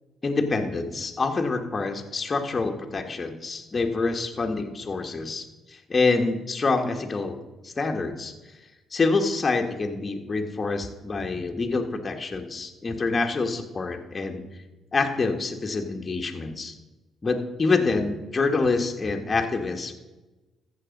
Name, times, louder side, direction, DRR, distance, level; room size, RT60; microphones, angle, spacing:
voice 1, 0.2-7.4 7.6-8.3 8.9-14.4 14.9-16.7 17.2-19.9, left 3 dB, 35° left, 3 dB, 1.5 m, -26 dB
14.5 x 7.1 x 5.3 m, 1.1 s
cardioid pair, 75°, 0 cm